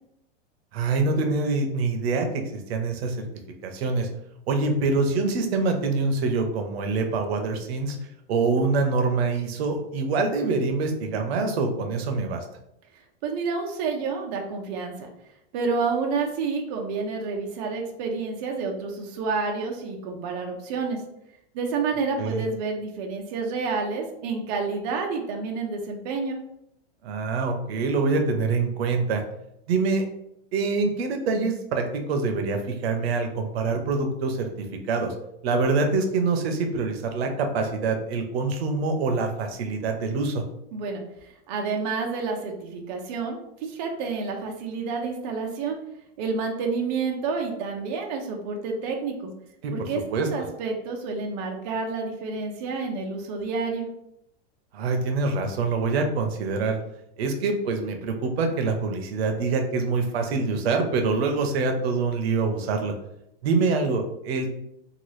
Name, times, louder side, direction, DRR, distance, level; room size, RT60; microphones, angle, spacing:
voice 1, 0.7-3.2 3.6-4.1 4.5-8.0 8.3-12.4 22.2-22.4 27.0-29.2 29.7-30.0 30.5-34.5 34.9-35.1 35.4-40.4 49.6-50.3 54.7-56.8 57.2-62.9 63.4-64.5, right 3 dB, 90° right, 5 dB, 0.7 m, -25 dB
voice 2, 13.2-15.1 15.5-21.0 21.5-26.4 40.7-45.8 46.2-49.3 49.7-53.9, right 4 dB, 45° right, 2 dB, 0.5 m, -29 dB
2.9 x 2.3 x 3.1 m, 0.80 s
supercardioid pair, 165°, 30 cm